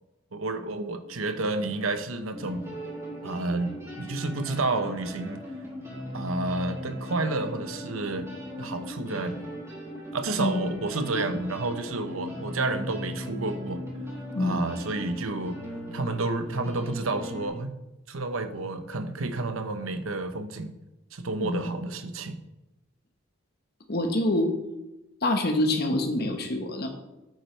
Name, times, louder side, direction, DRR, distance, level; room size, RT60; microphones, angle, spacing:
voice 1, 0.3-2.7 3.2-5.4 6.1-8.3 8.6-9.5 10.1-13.8 14.4-15.6 15.9-17.7 18.1-20.7 21.1-22.4, right 2 dB, 85° right, 8 dB, 0.9 m, -30 dB
sound 1, 2.3-17.5, equal, 15° right, 3.7 m, -38 dB
voice 2, 10.4-10.7 11.1-11.4 14.3-14.6 21.4-21.6 23.9-24.5 25.2-26.9, left 1 dB, 50° left, 4 dB, 1.3 m, -26 dB
9.4 x 8.9 x 3.3 m, 0.99 s
head